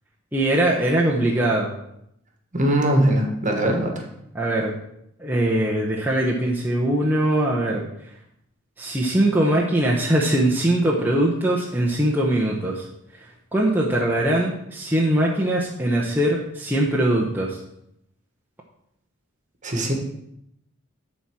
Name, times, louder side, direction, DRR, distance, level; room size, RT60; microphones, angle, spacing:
voice 1, 0.3-1.7 4.3-4.7 5.2-7.8 8.8-12.8 13.5-17.6, right 1 dB, 10° right, -4 dB, 0.9 m, -21 dB
voice 2, 2.5-4.1 19.6-19.9, right 1 dB, 35° right, 3 dB, 1.5 m, -21 dB
11.0 x 4.3 x 6.2 m, 0.77 s
head